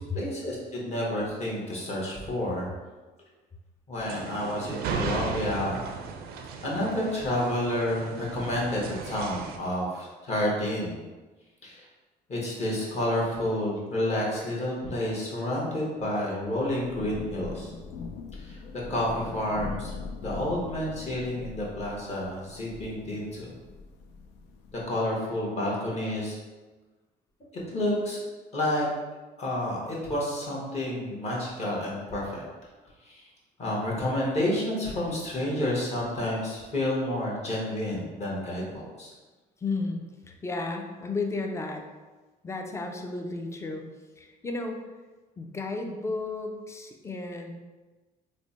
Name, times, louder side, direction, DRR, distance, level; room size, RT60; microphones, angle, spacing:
voice 1, 0.1-2.7 3.9-5.8 6.6-11.0 11.6-11.8 12.3-17.7 18.4-18.6 18.9-19.9 20.2-23.5 24.7-26.4 27.7-28.2 28.5-28.9 29.4-32.4 33.0-33.2 33.6-39.1, left 1 dB, 40° left, -4 dB, 1.2 m, -30 dB
sound 1, 4.0-9.6, right 5 dB, 70° right, 0.4 m, -35 dB
Thunder / Rain, 16.4-25.0, left 4 dB, 85° left, 0.4 m, -41 dB
voice 2, 39.6-41.8 42.4-43.9 44.2-44.8 45.4-47.5, left 3 dB, 15° left, 3 dB, 0.4 m, -33 dB
3.2 x 2.1 x 4.0 m, 1.2 s
cardioid pair, 110°, 17 cm